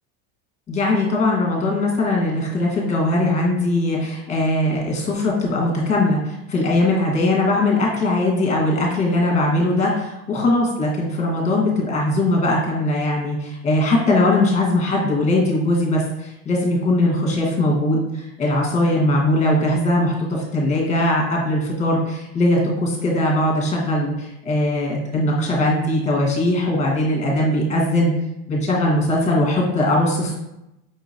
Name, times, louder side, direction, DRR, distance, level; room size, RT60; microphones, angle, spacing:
voice 1, 0.7-28.1 28.5-30.4, left 1 dB, 20° left, -1 dB, 1.3 m, -20 dB
5.5 x 2.9 x 2.7 m, 0.85 s
supercardioid pair, 140°, 35 cm